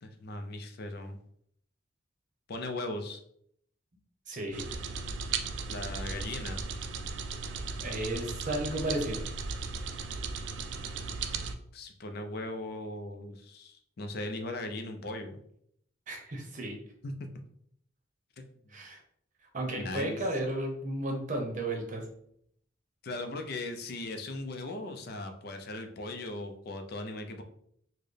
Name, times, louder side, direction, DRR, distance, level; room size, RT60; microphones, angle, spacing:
voice 1, 0.0-1.2 2.5-3.2 5.7-6.7 11.7-15.4 17.0-17.1 18.4-18.5 19.8-20.2 23.0-27.4, left 2 dB, 55° left, 6 dB, 0.5 m, -38 dB
voice 2, 4.3-4.6 7.8-9.2 16.1-16.8 18.7-19.0 19.5-22.1, right 1 dB, 45° right, 2 dB, 0.7 m, -33 dB
sound 1, 4.5-11.6, right 4 dB, 65° right, 0.4 m, -36 dB
4.2 x 2.1 x 3.2 m, 0.68 s
head